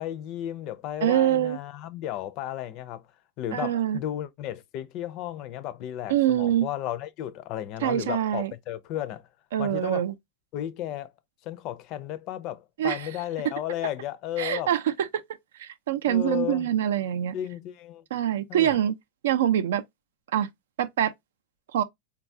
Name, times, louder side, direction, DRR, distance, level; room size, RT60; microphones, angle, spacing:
voice 1, 0.0-3.0 3.4-9.3 9.6-10.1 10.5-11.1 11.4-14.7 16.1-16.7 17.3-18.0 18.5-18.8, left 12 dB, 40° left, 0.4 m, -34 dB
voice 2, 1.0-1.6 3.5-4.0 6.1-6.7 7.8-8.5 9.5-10.1 12.8-13.1 14.4-15.2 15.6-17.3 18.1-18.9 19.2-19.8 20.3-20.5 20.8-21.1 21.7-21.8, right 11 dB, 90° right, 0.4 m, -24 dB
3.8 x 2.3 x 2.6 m
supercardioid pair, 155°, 0 cm